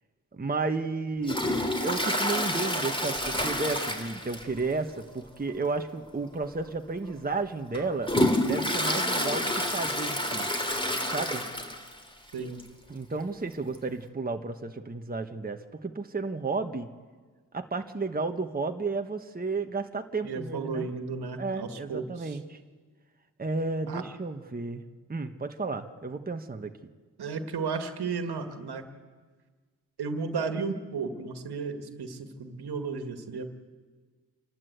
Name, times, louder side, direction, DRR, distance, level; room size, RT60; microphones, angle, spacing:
voice 1, 0.3-1.4 1.8-8.1 8.4-10.5 11.1-11.4 12.9-16.9 17.5-20.9 21.4-22.6 23.4-24.8 25.1-26.7, right 3 dB, 20° right, 5 dB, 1.3 m, -32 dB
Toilet flush, 1.2-4.7 5.0-5.1 5.5-5.6 6.4-6.5 7.1-12.0 12.3-12.4 12.6-12.7 13.7-13.8, left 1 dB, 10° left, 3.2 m, -28 dB
voice 2, 20.2-22.4 23.9-24.0 27.2-28.8 30.0-33.5, right 4 dB, 65° right, 7 dB, 2.0 m, -34 dB
28.0 x 12.0 x 8.1 m, 1.5 s
supercardioid pair, 50°, 41 cm